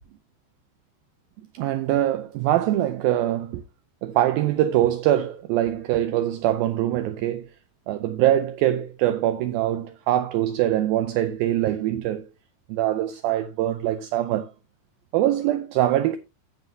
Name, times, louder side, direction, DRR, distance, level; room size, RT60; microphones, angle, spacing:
voice 1, 1.5-3.6 4.0-7.5 7.9-12.3 12.7-14.5 15.1-16.2, right 13 dB, 80° right, 2.2 m, -23 dB
16.0 x 5.7 x 2.7 m
omnidirectional pair, 4.7 m